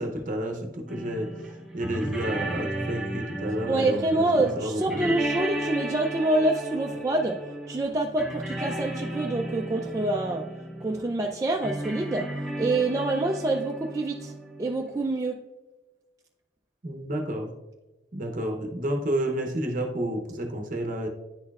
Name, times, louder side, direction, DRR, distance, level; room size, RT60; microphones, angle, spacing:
voice 1, 0.0-1.3 1.7-5.1 16.8-17.5 18.1-21.1, right 1 dB, 45° right, 3 dB, 0.7 m, -30 dB
sound 1, 0.9-15.0, right 1 dB, ahead, 0.8 m, -35 dB
voice 2, 3.7-7.4 7.7-10.4 10.8-12.3 12.6-15.4, right 2 dB, 20° right, 0 dB, 0.3 m, -26 dB
10.0 x 4.3 x 2.3 m, 1.1 s
head